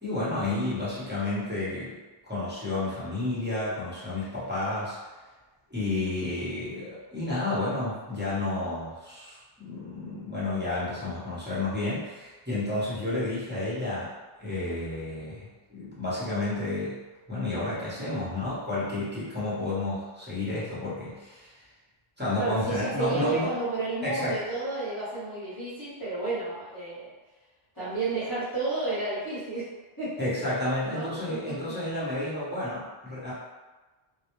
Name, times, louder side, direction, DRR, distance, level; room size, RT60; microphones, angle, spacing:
voice 1, 0.0-2.0 2.3-5.0 5.7-14.1 14.4-17.0 17.3-21.5 22.2-23.5 24.0-24.4 30.2-33.3, left 2 dB, 10° right, -11 dB, 0.7 m, -31 dB
voice 2, 22.4-27.1 27.7-29.7 30.0-30.5 30.9-31.5, right 3 dB, 20° left, -14 dB, 0.9 m, -32 dB
2.2 x 2.0 x 2.9 m, 1.2 s
omnidirectional pair, 1.0 m